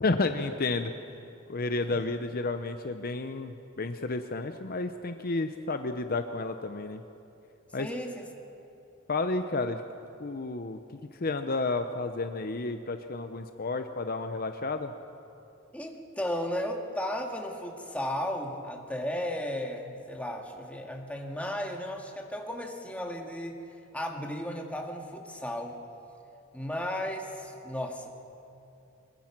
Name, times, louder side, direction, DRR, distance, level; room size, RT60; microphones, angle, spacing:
voice 1, 0.0-0.9 1.5-7.0 7.7-7.9 9.1-9.8 10.2-14.9, left 3 dB, 45° left, 8 dB, 0.7 m, -31 dB
voice 2, 7.8-8.3 15.7-23.6 23.9-25.8 26.5-28.1, left 1 dB, 5° left, 1 dB, 1.9 m, -34 dB
23.5 x 21.0 x 6.0 m, 2.7 s
head